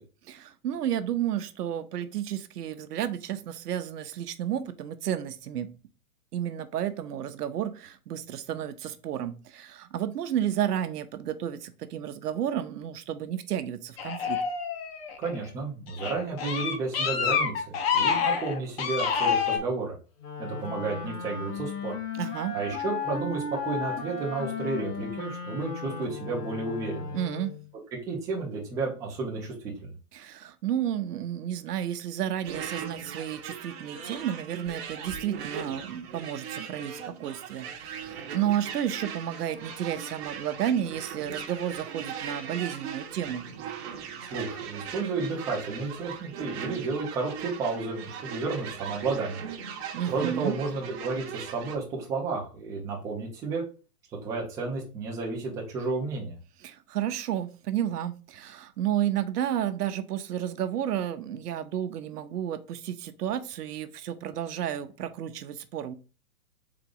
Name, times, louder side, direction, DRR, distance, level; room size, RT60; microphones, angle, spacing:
voice 1, 0.3-5.7 6.3-14.4 22.1-22.6 27.1-27.6 30.1-43.5 49.9-50.6 56.6-65.9, right 10 dB, 80° right, 0.7 m, -32 dB
sound 1, 14.0-15.3 15.9-19.6, left 6 dB, 40° left, 0.7 m, -27 dB
voice 2, 15.2-19.9 20.4-21.9 22.5-27.1 28.1-29.9 44.3-49.4 50.1-53.6 54.2-56.4, right 3 dB, 5° right, 0.4 m, -32 dB
Wind instrument woodwind instrument, 20.2-27.7, left 5 dB, 90° left, 1.4 m, -35 dB
sound 2, 32.4-51.8, right 7 dB, 45° right, 0.8 m, -39 dB
3.8 x 2.5 x 4.7 m
hypercardioid pair, 140°, 46 cm